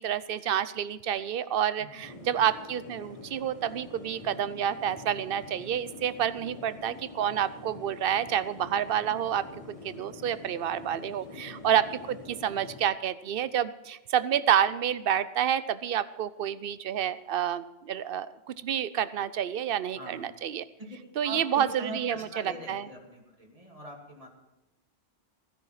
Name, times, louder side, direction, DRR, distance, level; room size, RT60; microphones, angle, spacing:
voice 1, 0.0-20.6 21.2-22.9, right 9 dB, 65° right, 16 dB, 0.8 m, -29 dB
sound 1, 2.0-12.8, left 2 dB, 30° left, 1.7 m, -46 dB
voice 2, 6.4-6.8 11.3-11.5 19.9-20.3 20.8-20.9 21.2-24.3, right 1 dB, 35° right, 0 dB, 2.6 m, -42 dB
16.0 x 10.0 x 5.7 m, 1.0 s
omnidirectional pair, 1.1 m